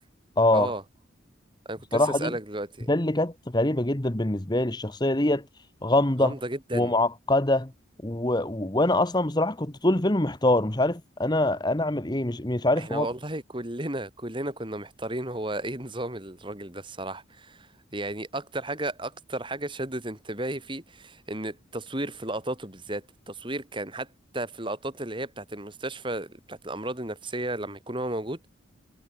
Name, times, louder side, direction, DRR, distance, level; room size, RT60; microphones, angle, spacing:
voice 1, 0.4-0.7 1.9-2.3 2.9-5.4 5.8-6.3 6.7-7.7 8.0-13.1, left 1 dB, 20° left, 1.2 m, -24 dB
voice 2, 1.6-2.9 6.2-6.9 12.8-24.1 24.3-28.5, right 1 dB, 25° right, 3.2 m, -34 dB
head